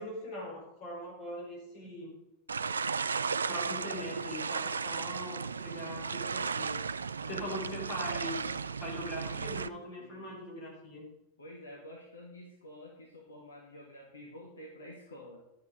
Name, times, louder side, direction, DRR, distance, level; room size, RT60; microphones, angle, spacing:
voice 1, 0.0-2.1 3.5-6.8 7.2-8.5 8.8-11.1, equal, 45° left, -2 dB, 4.6 m, -41 dB
sound 1, 2.5-9.7, right 5 dB, 75° right, 0.3 m, -35 dB
voice 2, 7.2-7.6 10.0-10.3 11.4-15.4, left 1 dB, 70° left, -1 dB, 1.8 m, -49 dB
11.5 x 6.7 x 5.1 m, 0.89 s
figure-of-eight pair, 90°, 0 cm